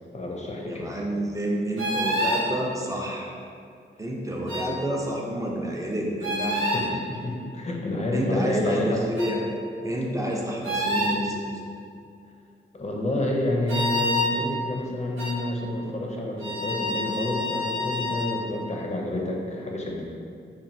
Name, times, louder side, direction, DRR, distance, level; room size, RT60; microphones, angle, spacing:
voice 1, 0.1-0.9 6.7-9.1 12.7-20.0, left 1 dB, 35° left, -1 dB, 0.5 m, -28 dB
voice 2, 0.7-3.3 4.0-6.7 8.1-9.4 9.8-11.4, right 1 dB, 15° right, -2 dB, 0.4 m, -29 dB
sound 1, 1.8-2.5 4.5-4.7 6.2-6.8 9.2-9.3 10.6-11.2 13.7-14.3 15.2-15.3 16.4-18.3, left 1 dB, 90° right, 0.6 m, -27 dB
3.0 x 2.2 x 2.5 m, 2.3 s
cardioid pair, 65°, 20 cm